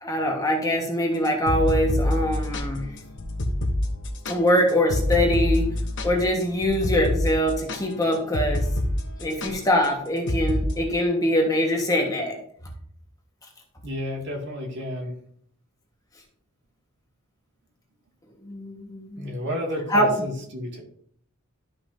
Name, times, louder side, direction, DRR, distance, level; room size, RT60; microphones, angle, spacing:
voice 1, 0.0-2.9 4.3-5.7 6.0-8.6 9.2-12.3 18.4-19.3 19.9-20.1, equal, 15° left, 0 dB, 1.4 m, -23 dB
sound 1, 1.3-8.9 9.2-9.5 10.3-10.7, left 1 dB, 60° left, 1.0 m, -26 dB
voice 2, 13.8-15.1 19.2-20.8, left 1 dB, 55° right, 0 dB, 2.1 m, -31 dB
12.5 x 5.6 x 2.7 m, 0.63 s
head